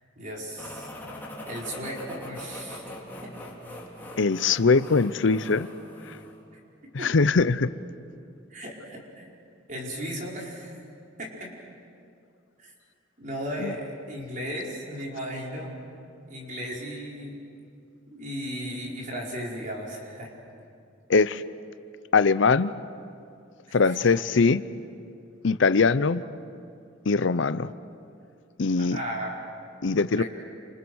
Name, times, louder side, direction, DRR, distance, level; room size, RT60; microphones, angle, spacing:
voice 1, 0.1-0.9 1.5-2.8 3.2-3.3 7.0-7.1 8.5-9.2 9.7-10.8 11.2-11.5 12.6-12.7 13.2-15.8 16.3-17.4 18.1-20.3 23.8-24.0 28.8-29.3 30.2-30.3, equal, 40° right, -2 dB, 5.0 m, -35 dB
sound 1, 0.6-6.4, left 1 dB, 10° left, 3.7 m, -42 dB
voice 2, 4.2-5.7 6.9-7.7 13.6-13.7 21.1-21.4 22.1-22.7 23.7-24.6 25.4-26.2 27.1-27.7 28.6-29.0 29.8-30.2, left 4 dB, 70° left, 15 dB, 0.6 m, -21 dB
29.0 x 28.0 x 6.3 m, 2.5 s
head